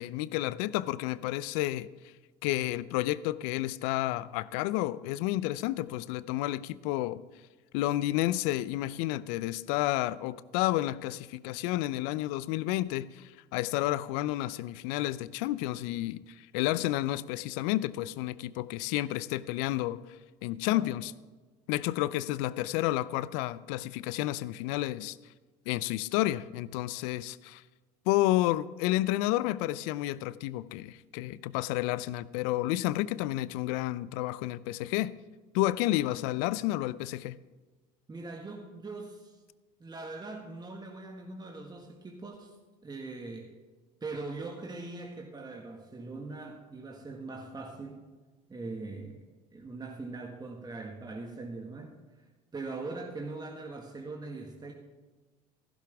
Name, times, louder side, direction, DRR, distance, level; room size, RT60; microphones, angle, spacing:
voice 1, 0.0-1.9 2.4-7.2 7.7-20.0 20.4-21.1 21.7-25.2 25.7-27.6 28.1-35.1 35.5-37.4, left 16 dB, 70° left, 18 dB, 0.5 m, -30 dB
voice 2, 38.1-39.4 39.8-42.5 42.8-43.5 44.0-48.0 48.5-49.2 49.5-51.9 52.5-54.7, right 3 dB, 20° right, 1 dB, 1.7 m, -41 dB
15.0 x 11.5 x 3.5 m, 1.3 s
hypercardioid pair, 75°, 20 cm